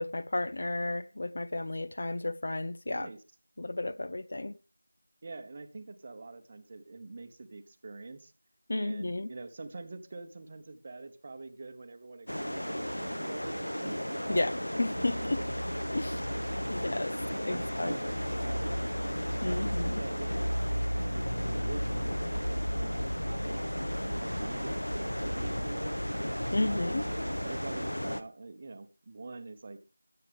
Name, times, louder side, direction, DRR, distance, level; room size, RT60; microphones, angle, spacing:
voice 1, 0.0-3.1 3.6-4.5 8.7-9.3 14.3-14.5 14.8-15.4 15.9-16.2 16.7-17.1 17.4-17.9 19.4-20.0 26.5-27.0, left 2 dB, 35° left, 0.5 m, -32 dB
voice 2, 5.2-8.3 8.7-14.4 17.1-18.8 19.4-20.3 20.7-23.7 24.0-26.0 26.7-27.1 27.4-29.8, right 3 dB, 20° right, 0.9 m, -45 dB
sound 1, 12.3-28.2, equal, 80° left, 1.2 m, -33 dB
20.0 x 7.8 x 3.5 m
figure-of-eight pair, 175°, 0 cm